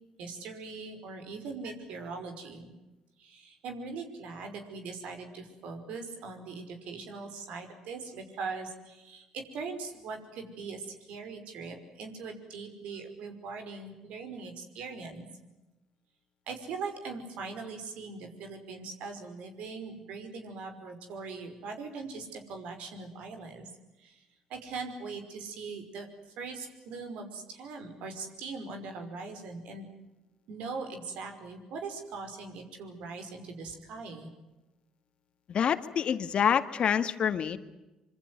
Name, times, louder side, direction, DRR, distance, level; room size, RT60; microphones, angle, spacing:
voice 1, 0.2-2.7 3.2-15.2 16.5-23.7 24.0-24.2 24.5-26.1 26.4-29.9 30.5-34.3, right 4 dB, 75° right, 6 dB, 5.5 m, -41 dB
voice 2, 35.5-37.6, left 8 dB, 55° left, 11 dB, 2.0 m, -27 dB
26.0 x 24.5 x 7.9 m, 1.0 s
supercardioid pair, 60°, 2 cm